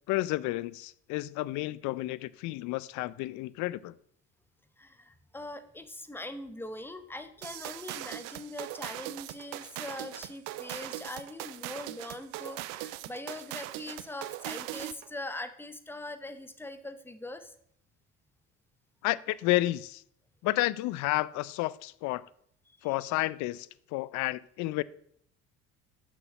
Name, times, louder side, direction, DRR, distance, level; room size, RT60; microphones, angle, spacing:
voice 1, 0.1-4.0 19.0-20.0 20.4-22.2 22.8-24.8, left 18 dB, 70° left, 20 dB, 0.5 m, -31 dB
voice 2, 4.8-17.6 22.7-22.8, left 2 dB, 5° left, 10 dB, 0.9 m, -42 dB
sound 1, 7.4-15.1, right 16 dB, 85° right, 0.6 m, -40 dB
6.2 x 6.1 x 7.2 m, 0.67 s
supercardioid pair, 100°, 30 cm